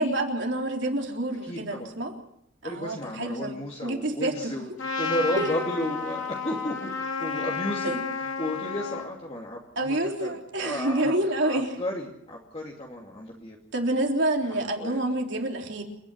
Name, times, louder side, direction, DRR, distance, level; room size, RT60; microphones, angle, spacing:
voice 1, 0.0-2.1 2.6-4.6 5.4-5.5 7.8-8.0 9.8-11.7 13.7-15.8, right 1 dB, 60° right, 1 dB, 3.8 m, -28 dB
voice 2, 1.4-1.9 2.6-4.7 5.0-11.1 11.4-13.6 14.5-15.0, left 1 dB, 30° left, -2 dB, 2.7 m, -33 dB
Trumpet, 4.8-9.1, left 5 dB, 75° left, 2.5 m, -31 dB
28.5 x 10.5 x 9.8 m, 0.75 s
head